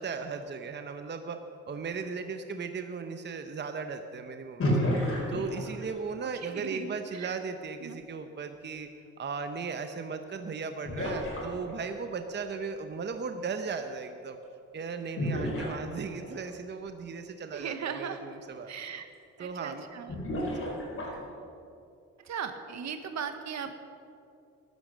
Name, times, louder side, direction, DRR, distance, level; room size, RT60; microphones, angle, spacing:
voice 1, 0.0-1.4 1.7-4.9 5.3-8.9 9.2-14.4 14.7-18.7 19.4-19.9 20.5-20.7, right 5 dB, 35° right, 7 dB, 0.9 m, -37 dB
sound 1, 4.6-6.1 10.0-10.1 10.8-12.0 15.2-16.4 17.8-17.9 18.3-18.4 20.1-21.3, equal, 45° left, 4.5 m, -31 dB
voice 2, 6.4-7.4 7.8-8.0 17.5-18.2 18.7-19.1 19.4-20.1 22.2-23.8, right 7 dB, 65° right, 8 dB, 1.3 m, -38 dB
14.5 x 12.0 x 6.3 m, 2.5 s
cardioid pair, 90°, 30 cm